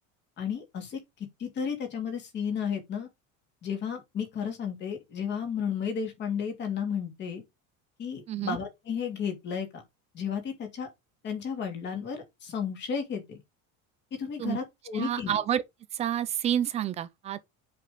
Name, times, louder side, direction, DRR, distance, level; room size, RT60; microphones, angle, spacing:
voice 1, 0.4-1.0 1.4-3.1 3.6-7.4 8.0-9.8 10.1-10.9 11.2-13.4 14.1-15.4, left 7 dB, 30° left, 2.6 m, -33 dB
voice 2, 14.9-15.6 15.9-17.4, right 10 dB, 20° right, 0.3 m, -29 dB
7.5 x 5.3 x 3.8 m
cardioid pair, 180°, 35 cm